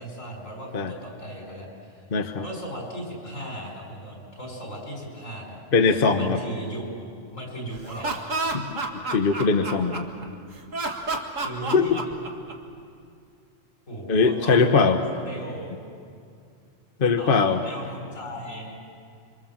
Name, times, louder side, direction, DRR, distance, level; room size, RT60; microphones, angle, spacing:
voice 1, 0.0-2.0 2.4-5.6 6.1-6.9 7.3-8.2 11.4-11.9 13.9-14.6 15.0-15.8 17.2-18.8, right 1 dB, 85° left, 0 dB, 5.6 m, -37 dB
voice 2, 2.1-2.4 5.7-6.4 8.5-8.7 8.9-10.1 11.7-12.0 14.1-15.0 17.0-17.6, left 4 dB, 45° left, 6 dB, 1.2 m, -21 dB
Laughter, 7.7-10.2 10.7-12.8, right 3 dB, 80° right, 2.3 m, -30 dB
27.5 x 24.5 x 7.4 m, 2.4 s
omnidirectional pair, 1.3 m